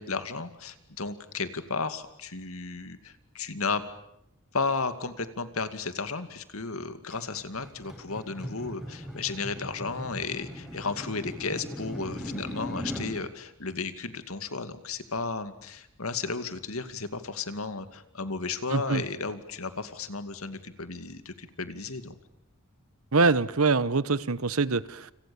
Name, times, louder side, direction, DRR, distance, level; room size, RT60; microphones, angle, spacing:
voice 1, 0.0-3.8 4.5-22.2, left 4 dB, 80° left, 2.4 m, -34 dB
sound 1, 7.1-13.1, equal, ahead, 7.6 m, -39 dB
voice 2, 18.7-19.0 23.1-25.1, right 4 dB, 75° right, 1.1 m, -24 dB
29.0 x 27.5 x 7.1 m
head